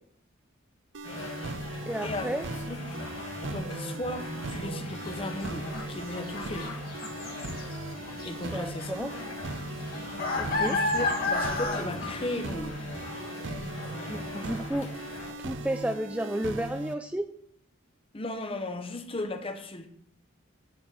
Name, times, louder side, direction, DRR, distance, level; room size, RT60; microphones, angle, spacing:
sound 1, 0.9-16.9, right 2 dB, 60° right, 0.7 m, -39 dB
sound 2, 1.0-15.3, left 1 dB, 75° left, 2.2 m, -41 dB
voice 1, 1.9-2.4 8.5-9.1 10.4-10.8 14.1-14.9 15.4-17.3, right 1 dB, 5° right, 8 dB, 0.3 m, -32 dB
voice 2, 3.5-6.7 8.2-9.1 10.6-12.7 18.1-19.9, left 2 dB, 25° left, 7 dB, 0.8 m, -36 dB
sound 3, 5.0-5.1 5.4-7.8 8.1-8.4 8.7-8.8 9.2-12.3, left 2 dB, 45° left, 1.4 m, -30 dB
10.5 x 4.4 x 7.6 m, 0.72 s
head